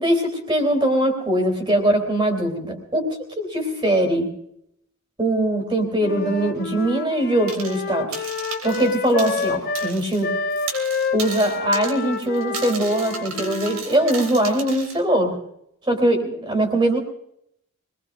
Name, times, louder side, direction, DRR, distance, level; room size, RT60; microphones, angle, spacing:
voice 1, 0.0-4.3 5.2-8.3 8.6-10.3 11.1-15.3 15.9-17.0, right 1 dB, 20° right, 3 dB, 3.5 m, -21 dB
Wind instrument woodwind instrument, 6.0-14.3, left 4 dB, 50° left, 1.0 m, -29 dB
sound 1, 7.5-7.8 8.1-10.2 10.5-15.0, right 5 dB, 85° right, 3.5 m, -35 dB
25.0 x 20.5 x 2.6 m, 0.76 s
head